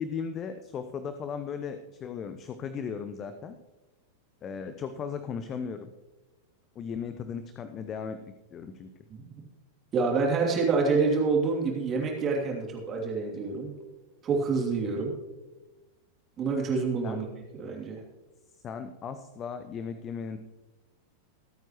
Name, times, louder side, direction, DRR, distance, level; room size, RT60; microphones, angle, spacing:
voice 1, 0.0-3.6 4.4-5.9 6.8-8.9 17.0-17.2 18.6-20.4, left 6 dB, 30° left, 10 dB, 0.7 m, -36 dB
voice 2, 9.1-9.4 9.9-13.7 14.2-15.1 16.4-17.3 17.5-18.0, right 4 dB, 25° right, -1 dB, 3.0 m, -27 dB
23.0 x 9.1 x 3.1 m, 1.1 s
figure-of-eight pair, 90°, 0 cm